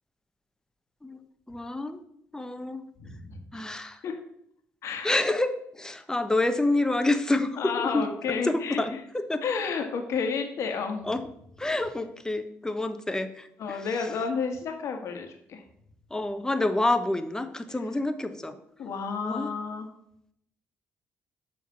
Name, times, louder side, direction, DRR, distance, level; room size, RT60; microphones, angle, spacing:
voice 1, 1.0-2.0 2.3-2.9 3.5-4.0 5.0-9.4 11.0-11.2 11.6-13.9 16.1-18.6 19.2-19.5, left 2 dB, 10° left, 8 dB, 1.0 m, -28 dB
voice 2, 3.0-3.4 4.0-4.1 4.8-5.1 7.6-8.8 9.4-11.1 13.6-15.6 18.8-19.9, left 5 dB, 65° left, 4 dB, 1.5 m, -31 dB
7.2 x 3.9 x 6.2 m, 0.71 s
supercardioid pair, 60°, 5 cm